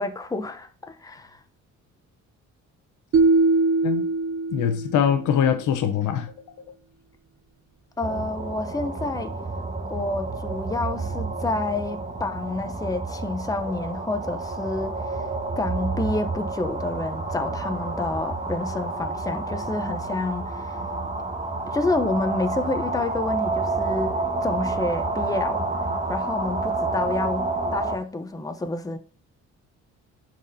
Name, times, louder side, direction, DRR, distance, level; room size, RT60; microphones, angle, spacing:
voice 1, 0.0-1.4 8.0-9.3 9.9-15.2 15.6-20.8 21.7-24.2 24.4-25.6 26.1-29.0, left 2 dB, 10° left, 0.7 m, -29 dB
sound 1, 3.1-5.3, right 3 dB, 45° right, 0.6 m, -21 dB
voice 2, 4.5-6.8, left 8 dB, 80° left, 0.8 m, -23 dB
sound 2, 8.0-28.0, right 3 dB, 25° right, 1.3 m, -29 dB
11.5 x 4.3 x 2.7 m
cardioid pair, 90°, 30 cm